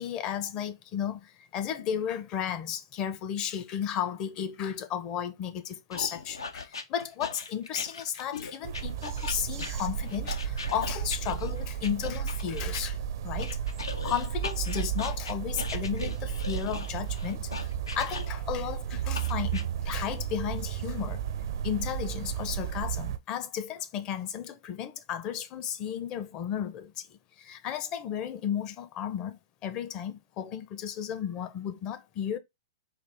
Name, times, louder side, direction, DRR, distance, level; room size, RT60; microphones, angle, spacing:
voice 1, 0.0-13.0 13.2-13.6 14.0-21.2 21.6-32.4, left 9 dB, 35° left, 0.7 m, -34 dB
sound 1, 5.9-12.8 13.4-18.6 19.1-19.6, left 4 dB, 85° left, 0.7 m, -39 dB
sound 2, 8.6-23.2, right 9 dB, 60° right, 0.5 m, -33 dB
4.2 x 2.5 x 3.3 m
hypercardioid pair, 120°, 2 cm